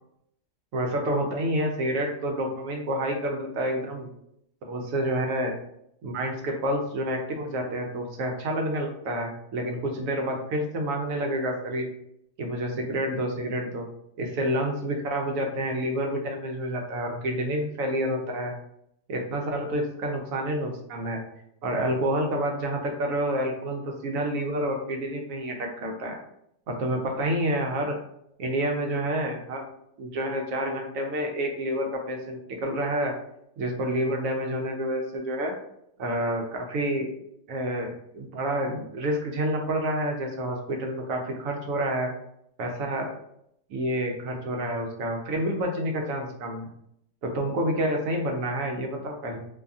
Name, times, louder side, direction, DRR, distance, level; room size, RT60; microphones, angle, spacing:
voice 1, 0.7-4.1 4.7-5.5 6.0-11.9 12.4-13.8 14.2-18.5 19.1-21.2 21.6-26.2 26.7-28.0 28.4-29.7 30.0-33.1 33.6-35.5 36.0-37.1 37.5-42.1 42.6-43.1 43.7-46.7 47.2-49.4, right 1 dB, 80° right, 2 dB, 1.0 m, -28 dB
2.7 x 2.3 x 2.5 m, 0.75 s
omnidirectional pair, 1.4 m